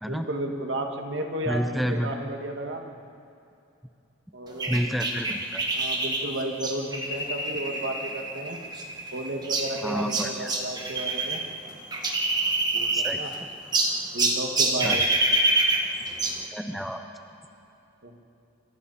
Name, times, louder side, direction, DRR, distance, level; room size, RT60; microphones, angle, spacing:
voice 1, 0.1-2.8 4.3-4.7 5.7-8.6 9.1-11.4 12.7-13.3 14.1-15.0 18.0-18.2, right 1 dB, 60° right, 3 dB, 2.2 m, -33 dB
voice 2, 1.5-2.1 4.7-5.6 9.8-10.5 12.9-13.2 14.7-15.0 16.5-17.0, equal, ahead, 5 dB, 0.8 m, -29 dB
sound 1, 4.6-11.4 11.7-13.4 13.7-16.4, right 2 dB, 20° right, 1.6 m, -26 dB
28.5 x 26.0 x 4.3 m, 2.7 s
head